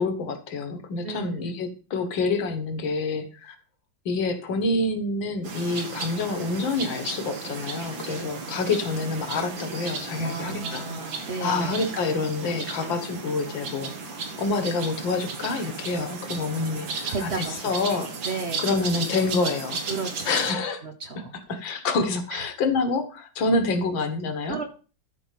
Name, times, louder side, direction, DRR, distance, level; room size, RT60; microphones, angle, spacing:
voice 1, 0.0-3.6 4.1-10.9 11.4-18.1 18.6-19.8 20.3-20.8 21.5-24.6, left 3 dB, 70° left, 8 dB, 2.1 m, -27 dB
voice 2, 1.0-1.4 8.0-8.2 10.1-11.8 17.1-17.7 18.2-18.9 19.9-20.3 20.8-21.3 22.3-22.4 24.4-24.6, right 4 dB, 45° right, 6 dB, 0.9 m, -33 dB
sound 1, 5.4-20.5, right 4 dB, 75° right, 2.3 m, -35 dB
12.0 x 4.4 x 5.8 m, 0.37 s
omnidirectional pair, 2.2 m